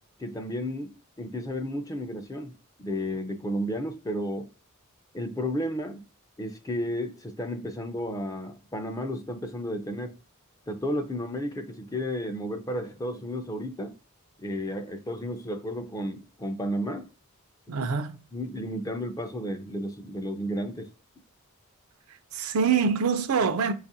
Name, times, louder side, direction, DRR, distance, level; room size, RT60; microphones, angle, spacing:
voice 1, 0.2-2.5 2.8-4.5 5.1-6.0 6.4-10.1 10.7-13.9 14.4-17.1 18.3-20.9, equal, 15° left, 0.4 m, -32 dB
voice 2, 17.7-18.1 22.1-23.7, right 6 dB, 85° right, 0.5 m, -25 dB
5.1 x 2.4 x 2.7 m
head